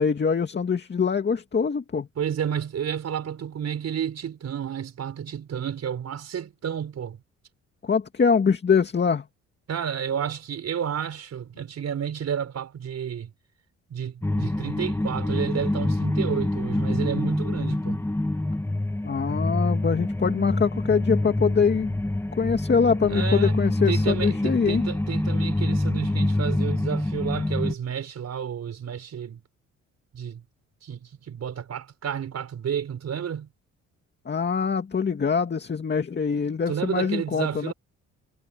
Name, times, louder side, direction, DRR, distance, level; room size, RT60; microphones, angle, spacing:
voice 1, 0.0-2.1 7.8-9.2 19.0-22.0 22.4-24.8 34.3-37.7, left 5 dB, 35° left, 2.3 m, -23 dB
voice 2, 2.2-7.2 9.7-13.3 13.9-18.0 23.1-23.5 23.9-29.4 30.1-30.4 30.8-33.5 36.7-37.7, right 8 dB, 60° right, 5.5 m, -31 dB
sound 1, 14.2-27.7, left 1 dB, 10° left, 1.7 m, -26 dB
cardioid pair, 90°, 30 cm